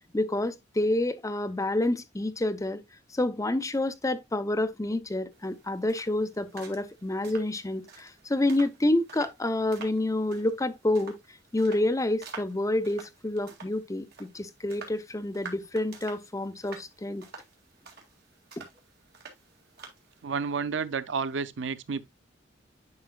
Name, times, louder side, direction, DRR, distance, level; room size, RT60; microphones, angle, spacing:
voice 1, 0.1-2.8 3.1-11.2 11.5-17.2 18.6-18.7, left 1 dB, 20° left, 0.6 m, -28 dB
sound 1, 5.3-20.2, right 5 dB, 60° right, 2.1 m, -49 dB
voice 2, 20.2-22.0, right 5 dB, 85° right, 0.6 m, -30 dB
9.5 x 5.4 x 2.3 m
head